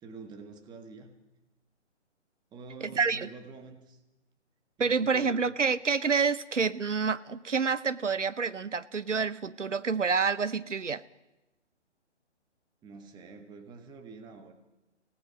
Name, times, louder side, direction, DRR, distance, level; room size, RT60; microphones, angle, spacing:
voice 1, 0.0-1.2 2.5-4.0 4.8-5.3 12.8-14.5, right 4 dB, 10° right, 6 dB, 1.6 m, -47 dB
voice 2, 2.8-3.3 4.8-11.0, right 5 dB, 85° right, 16 dB, 1.0 m, -28 dB
28.0 x 17.5 x 5.2 m, 0.95 s
figure-of-eight pair, 135°, 36 cm